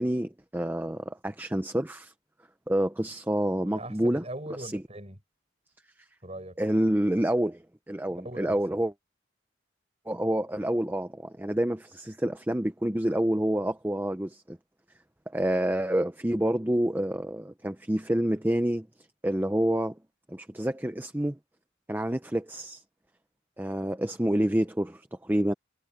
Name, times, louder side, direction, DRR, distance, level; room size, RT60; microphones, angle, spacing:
voice 1, 0.0-2.1 2.7-4.2 4.6-4.8 6.6-8.9 10.1-14.6 15.3-18.9 19.2-20.0 20.3-21.4 21.9-22.8 23.6-25.5, right 1 dB, 10° right, 0.6 m, -28 dB
voice 2, 3.6-5.2 6.2-6.6 8.1-8.8, right 1 dB, 30° right, 7.4 m, -40 dB
head